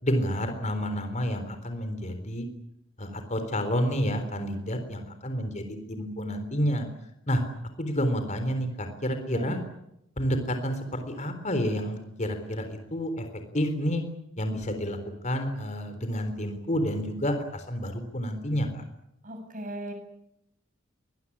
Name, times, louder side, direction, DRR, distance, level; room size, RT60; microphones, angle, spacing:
voice 1, 0.0-2.5 3.0-6.9 7.3-7.4 7.8-9.6 10.2-13.3 13.5-14.0 14.4-15.0 15.2-18.8, equal, 35° left, 7 dB, 3.8 m, -29 dB
voice 2, 9.3-9.6 19.2-19.9, right 1 dB, 40° right, 6 dB, 7.3 m, -37 dB
24.0 x 20.5 x 9.9 m, 0.82 s
head